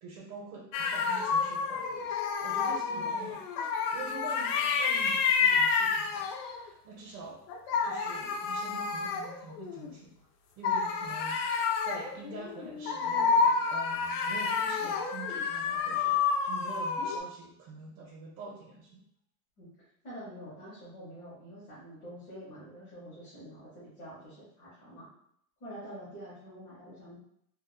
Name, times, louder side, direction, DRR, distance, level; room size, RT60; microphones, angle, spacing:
voice 1, 0.0-2.1 2.4-7.4 7.8-10.3 10.6-19.0, right 3 dB, 85° right, -5 dB, 0.9 m, -46 dB
sound 1, 0.7-6.7 7.5-9.9 10.6-17.2, left 5 dB, 70° left, 0.5 m, -29 dB
voice 2, 20.0-25.1 25.6-27.2, equal, 25° left, -10 dB, 0.6 m, -46 dB
3.0 x 2.1 x 2.2 m, 0.71 s
supercardioid pair, 170°, 49 cm